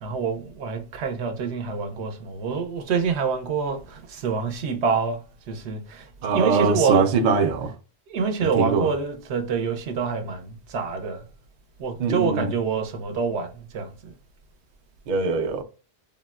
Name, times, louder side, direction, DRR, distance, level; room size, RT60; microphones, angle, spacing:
voice 1, 0.0-6.1 6.3-7.0 8.1-11.3 11.8-14.1, right 5 dB, 80° right, 0.9 m, -27 dB
voice 2, 6.2-7.7 8.4-8.9 12.0-12.5 15.1-15.6, right 4 dB, 55° right, 0.5 m, -22 dB
3.5 x 2.1 x 2.3 m
omnidirectional pair, 1.1 m